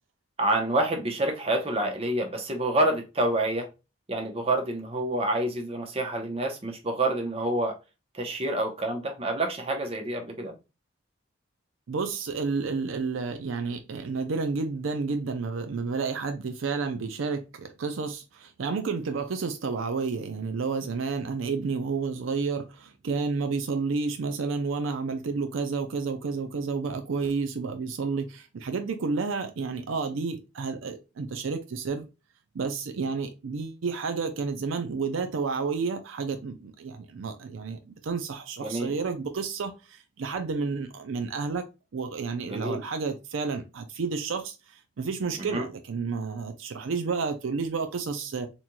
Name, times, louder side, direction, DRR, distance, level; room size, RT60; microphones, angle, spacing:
voice 1, 0.4-3.7 4.1-7.7 8.1-10.5 38.6-38.9 42.5-42.8 45.4-45.7, right 1 dB, 30° right, 0.7 m, -27 dB
voice 2, 11.9-32.0 32.5-41.7 41.9-48.5, right 4 dB, 75° right, 0.4 m, -31 dB
4.1 x 3.0 x 2.2 m
head